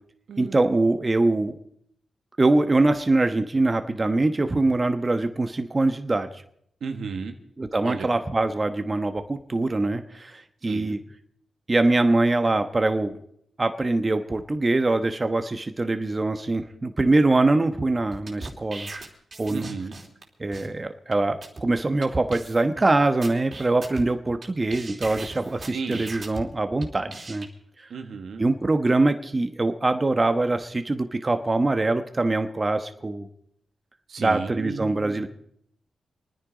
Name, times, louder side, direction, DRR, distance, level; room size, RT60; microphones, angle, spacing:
voice 1, 0.4-1.6 2.4-6.4 7.6-11.0 11.7-13.2 13.6-18.9 19.4-19.7 20.4-27.5 27.8-27.9 28.4-33.3 34.2-35.3, right 2 dB, 30° right, 8 dB, 1.1 m, -23 dB
voice 2, 6.8-7.4 7.8-8.1 10.7-11.0 19.5-19.9 25.7-26.0 27.9-28.4 34.1-35.3, right 5 dB, 75° right, 6 dB, 1.6 m, -33 dB
sound 1, 18.1-20.2 20.5-20.7 21.1-21.2 21.4-21.6 22.0-22.1 22.3-22.8 23.2-24.5 24.7-26.4 26.8-27.5, right 3 dB, 45° right, 3.1 m, -38 dB
26.5 x 9.9 x 5.1 m, 0.68 s
cardioid pair, 60°, 0 cm